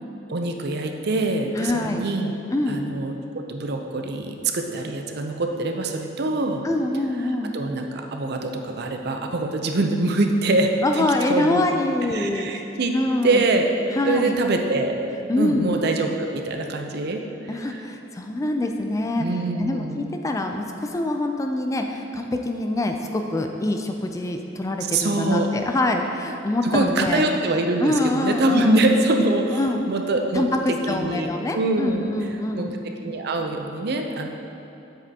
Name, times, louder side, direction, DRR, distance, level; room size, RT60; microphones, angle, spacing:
voice 1, 0.3-2.3 2.7-6.6 7.5-11.6 12.1-12.9 13.2-13.7 14.0-14.9 15.4-17.2 17.7-17.8 19.2-20.0 24.9-25.5 26.6-32.3 32.5-32.7 33.0-34.3, right 2 dB, 55° right, 4 dB, 0.6 m, -24 dB
voice 2, 1.5-2.1 2.5-2.8 6.6-7.5 10.8-12.5 12.9-13.5 13.9-14.4 15.3-15.8 17.5-19.3 19.5-27.2 27.8-28.8 29.5-29.8 30.3-30.5 30.9-32.7, left 2 dB, 15° left, 4 dB, 0.3 m, -25 dB
7.7 x 7.4 x 2.8 m, 3.0 s
head